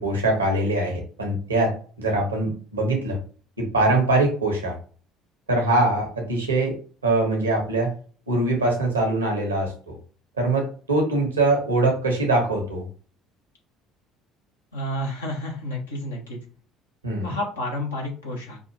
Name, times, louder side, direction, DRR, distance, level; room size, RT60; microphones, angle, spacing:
voice 1, 0.0-3.2 3.6-4.7 5.5-6.7 7.0-7.9 8.3-9.9 10.4-12.8 17.0-17.4, right 2 dB, 85° right, 1 dB, 1.1 m, -23 dB
voice 2, 14.7-16.4 17.2-18.6, left 1 dB, 80° left, -1 dB, 1.2 m, -30 dB
5.4 x 2.6 x 2.8 m, 0.41 s
figure-of-eight pair, 55°, 0 cm